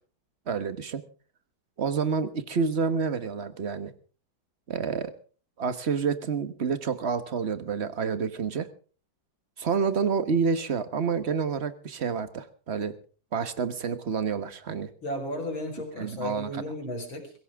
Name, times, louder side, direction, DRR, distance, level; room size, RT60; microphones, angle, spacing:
voice 1, 0.5-1.0 1.8-3.9 4.7-5.1 5.6-8.7 9.6-12.9 13.3-14.9 16.0-16.6, right 5 dB, 35° right, 12 dB, 1.3 m, -28 dB
voice 2, 15.0-17.3, left 1 dB, 75° left, 3 dB, 5.4 m, -34 dB
23.0 x 16.0 x 3.6 m, 0.39 s
omnidirectional pair, 2.2 m